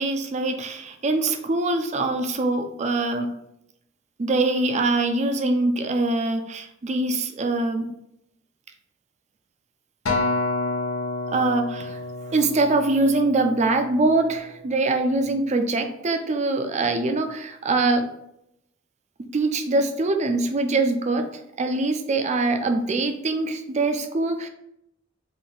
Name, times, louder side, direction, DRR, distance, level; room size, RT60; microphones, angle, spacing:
voice 1, 0.0-3.3 4.2-7.9 11.3-12.0 12.3-18.1 19.3-21.3 21.6-24.5, right 2 dB, 35° right, 6 dB, 0.4 m, -23 dB
Acoustic guitar, 10.1-14.5 15.1-15.3, left 2 dB, 90° left, 0.8 m, -29 dB
3.7 x 2.5 x 3.7 m, 0.79 s
head